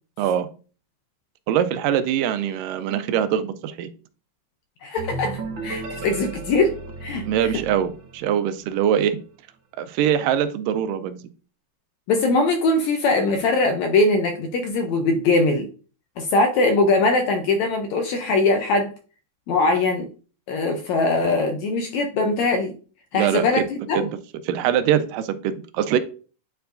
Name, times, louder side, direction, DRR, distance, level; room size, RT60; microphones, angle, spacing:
voice 1, 0.2-0.5 1.5-3.9 7.3-9.2 9.8-11.2 23.1-23.7 24.0-24.1 24.5-26.0, right 9 dB, 85° right, 11 dB, 2.2 m, -23 dB
voice 2, 4.8-6.7 7.0-7.5 12.1-15.7 16.2-18.9 19.5-20.1 20.5-22.7 23.1-24.0, left 3 dB, 75° left, 5 dB, 1.7 m, -21 dB
sound 1, 5.0-8.7, right 3 dB, 60° right, 1.2 m, -34 dB
9.4 x 4.6 x 2.6 m, 0.38 s
omnidirectional pair, 3.9 m